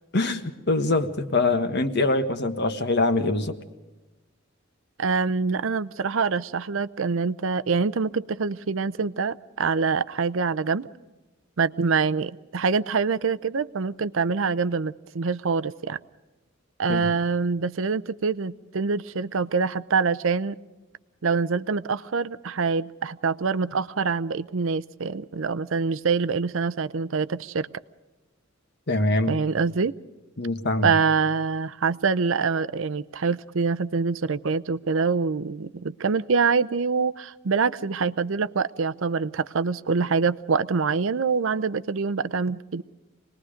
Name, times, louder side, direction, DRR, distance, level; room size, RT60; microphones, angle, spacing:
voice 1, 0.1-3.6 16.9-17.1 28.9-29.4 30.4-30.9, left 2 dB, 55° left, 8 dB, 1.6 m, -24 dB
voice 2, 5.0-10.9 11.6-16.0 16.8-20.6 21.2-27.7 29.3-29.9 30.8-42.8, right 5 dB, 65° right, 15 dB, 0.6 m, -25 dB
26.0 x 20.5 x 5.1 m, 1.1 s
head